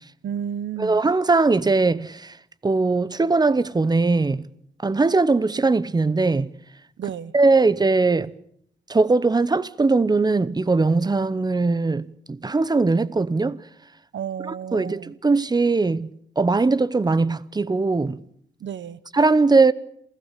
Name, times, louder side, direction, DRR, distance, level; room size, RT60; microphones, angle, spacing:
voice 1, 0.2-1.0 7.0-7.3 14.1-15.1 18.6-19.0, right 8 dB, 80° right, 1.0 m, -31 dB
voice 2, 0.8-2.3 2.6-4.5 4.8-6.5 7.0-8.3 8.9-13.6 14.4-18.2 19.1-19.7, right 3 dB, 20° right, 0.8 m, -20 dB
28.0 x 15.5 x 8.3 m
wide cardioid pair, 120°, 19 cm